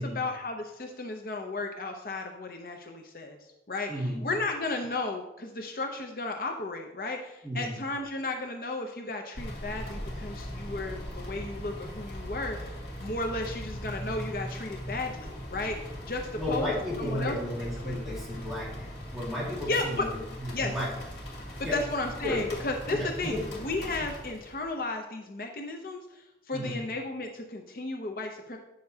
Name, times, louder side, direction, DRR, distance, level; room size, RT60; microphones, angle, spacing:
voice 1, 0.0-3.4 3.7-12.7 13.0-16.2 16.5-16.7 17.0-17.4 17.8-18.2 19.7-20.1 20.5-20.7 21.7-28.6, left 2 dB, 55° left, 3 dB, 0.6 m, -34 dB
voice 2, 3.9-4.3 7.4-7.8 16.4-20.1 20.4-21.0 21.6-21.8 22.2-22.5 22.9-23.5 26.5-26.8, left 1 dB, ahead, -8 dB, 1.9 m, -33 dB
sound 1, 9.3-24.7, equal, 75° left, 2.5 m, -40 dB
9.1 x 6.7 x 2.8 m, 0.93 s
head